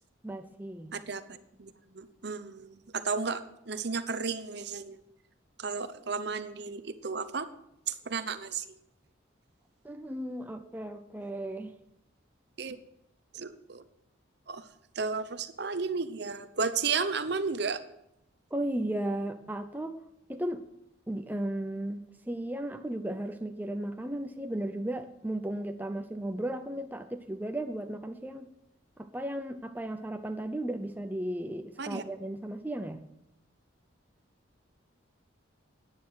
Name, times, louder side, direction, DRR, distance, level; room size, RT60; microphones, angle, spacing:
voice 1, 0.2-0.9 9.8-11.7 18.5-20.0 20.3-20.6 21.1-28.5 29.0-33.0, right 1 dB, 10° right, 6 dB, 0.6 m, -35 dB
voice 2, 0.9-1.2 1.6-5.0 5.6-7.5 7.9-8.6 12.6-12.8 13.3-13.8 14.5-14.6 15.0-17.8 31.8-32.0, right 5 dB, 55° right, 12 dB, 0.8 m, -33 dB
11.5 x 9.5 x 6.5 m, 0.80 s
head